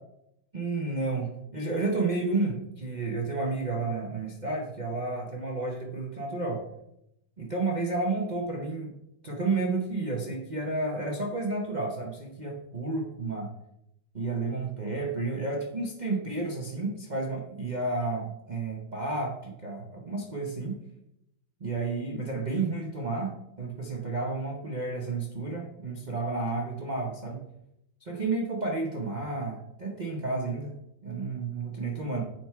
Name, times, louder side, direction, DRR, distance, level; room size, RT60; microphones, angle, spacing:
voice 1, 0.5-6.7 7.4-8.9 9.2-13.5 14.1-20.8 21.6-23.3 23.6-27.4 28.0-30.8 31.0-32.2, right 3 dB, 65° right, -1 dB, 0.4 m, -31 dB
7.9 x 4.5 x 4.6 m, 0.81 s
omnidirectional pair, 2.3 m